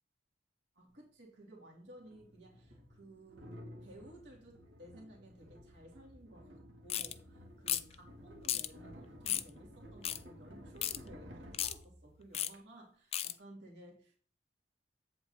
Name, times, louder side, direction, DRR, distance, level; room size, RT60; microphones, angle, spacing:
voice 1, 0.8-6.6 6.8-14.1, right 1 dB, 70° right, -1 dB, 2.3 m, -56 dB
sound 1, 0.9-1.0 2.0-12.6, equal, 90° right, 1.8 m, -54 dB
sound 2, 6.9-7.1 7.7-7.9 8.4-8.7 9.3-9.5 10.0-10.2 10.8-11.0 11.5-11.7 12.3-12.5 13.1-13.3, left 11 dB, 35° left, 0.3 m, -34 dB
8.3 x 7.6 x 2.7 m, 0.43 s
head